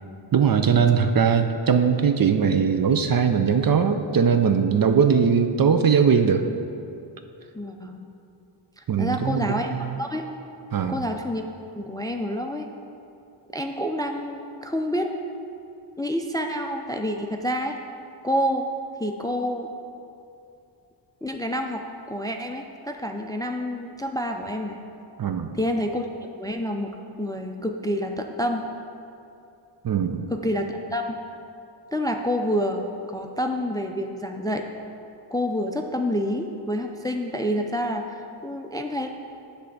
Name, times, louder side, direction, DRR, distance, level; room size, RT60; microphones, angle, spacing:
voice 1, 0.3-6.5 8.9-10.0 10.7-11.0 25.2-25.6 29.8-30.3, right 6 dB, 45° right, 8 dB, 0.5 m, -20 dB
voice 2, 7.5-8.0 8.8-10.2 10.9-11.4 11.8-12.7 13.5-15.1 16.0-17.8 18.2-18.6 19.0-19.7 21.2-24.8 25.5-26.1 26.4-28.7 30.3-31.2 31.9-34.6 35.3-39.1, equal, 10° left, 4 dB, 0.3 m, -28 dB
8.3 x 3.4 x 6.4 m, 2.6 s
cardioid pair, 70°, 49 cm